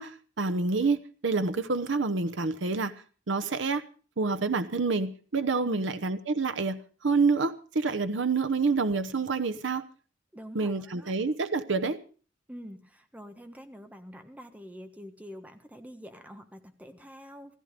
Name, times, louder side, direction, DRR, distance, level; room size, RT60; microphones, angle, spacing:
voice 1, 0.0-2.9 3.3-3.8 4.2-9.8 10.5-12.0, right 4 dB, 80° right, 11 dB, 0.8 m, -28 dB
voice 2, 10.3-11.1 12.5-17.6, equal, 10° right, 7 dB, 1.4 m, -45 dB
15.0 x 14.5 x 5.1 m, 0.39 s
head